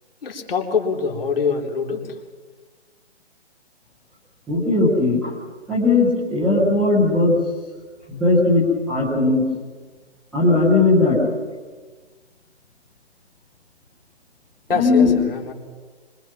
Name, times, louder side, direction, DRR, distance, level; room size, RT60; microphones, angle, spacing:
voice 1, 0.2-2.2 14.7-15.5, left 5 dB, 55° left, 1 dB, 3.6 m, -24 dB
voice 2, 4.5-5.3 5.7-7.4 8.1-9.4 10.3-11.2 14.7-15.2, left 3 dB, ahead, -18 dB, 0.6 m, -18 dB
25.0 x 23.0 x 6.0 m, 1.4 s
hypercardioid pair, 175°, 33 cm